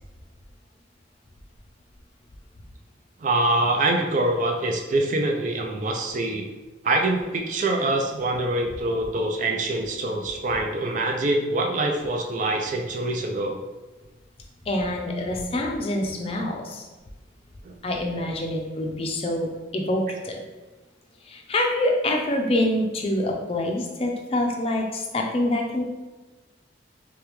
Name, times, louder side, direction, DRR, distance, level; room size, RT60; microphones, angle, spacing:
voice 1, 3.2-6.5 6.8-13.6 17.6-17.7 18.1-18.3, right 2 dB, 45° right, 2 dB, 0.4 m, -25 dB
voice 2, 14.7-16.9 17.8-20.4 21.3-25.8, left 1 dB, 35° left, 1 dB, 0.5 m, -26 dB
5.0 x 2.3 x 3.0 m, 1.2 s
head